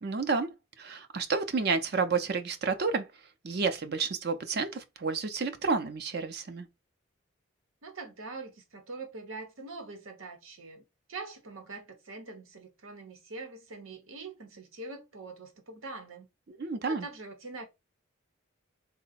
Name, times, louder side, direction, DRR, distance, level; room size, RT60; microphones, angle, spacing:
voice 1, 0.0-3.1 3.4-6.7 16.5-17.1, right 4 dB, 50° right, 0.5 m, -30 dB
voice 2, 7.8-10.8 11.1-16.3 16.9-17.7, right 3 dB, 85° right, 0.9 m, -43 dB
3.8 x 2.1 x 4.1 m
head